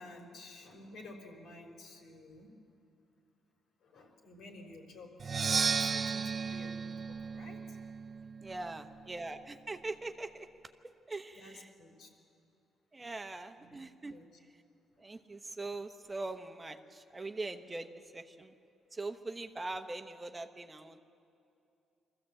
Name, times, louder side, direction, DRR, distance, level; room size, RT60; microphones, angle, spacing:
voice 1, 0.0-2.5 3.8-7.8 11.3-12.1 13.6-13.8 14.1-14.2, left 2 dB, 75° left, 1 dB, 3.7 m, -51 dB
Percussion, 5.2-9.0, right 5 dB, 40° right, 0.4 m, -34 dB
voice 2, 8.4-10.5 11.1-11.7 12.9-14.2 15.0-18.5 18.9-21.0, right 2 dB, 20° right, 6 dB, 1.0 m, -42 dB
24.5 x 14.5 x 7.8 m, 2.6 s
cardioid pair, 90°, 0 cm